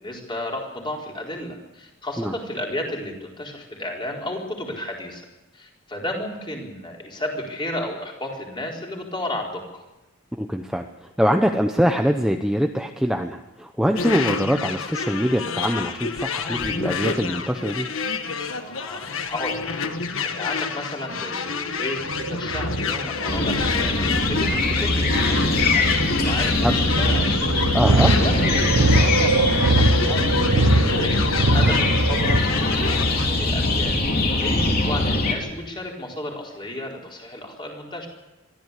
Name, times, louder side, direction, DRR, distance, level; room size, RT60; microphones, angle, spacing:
voice 1, 0.0-5.2 5.5-9.8 18.6-19.7 19.9-24.0 24.3-27.3 27.6-32.4 32.7-34.0 34.3-38.1, left 1 dB, 20° left, -1 dB, 4.4 m, -33 dB
voice 2, 10.4-10.9 11.2-17.9 26.6-26.7 27.7-28.1, equal, 5° right, 4 dB, 0.8 m, -23 dB
sound 1, 14.0-33.3, left 5 dB, 70° left, 1.5 m, -29 dB
sound 2, 22.0-32.4, right 2 dB, 85° right, 1.2 m, -22 dB
sound 3, 23.3-35.3, left 2 dB, 45° left, 3.4 m, -22 dB
23.0 x 14.5 x 8.4 m, 0.99 s
head